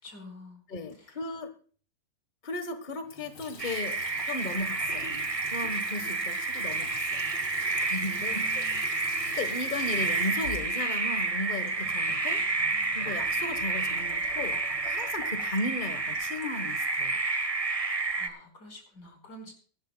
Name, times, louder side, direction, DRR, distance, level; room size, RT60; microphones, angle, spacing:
voice 1, 0.0-0.6 0.9-1.2 8.1-8.9 18.2-19.5, equal, 60° left, 3 dB, 5.1 m, -48 dB
voice 2, 0.7-1.5 2.4-5.1 5.5-7.2 7.8-8.6 9.2-12.4 12.9-17.2, left 2 dB, 30° left, 9 dB, 1.2 m, -36 dB
Water tap faucet / Sink (filling or washing) / Trickle dribble, 3.0-17.2, left 3 dB, 85° left, 3.4 m, -46 dB
sound 1, 3.6-18.3, right 3 dB, 25° right, 0.9 m, -30 dB
23.5 x 12.5 x 2.2 m, 0.42 s
omnidirectional pair, 2.0 m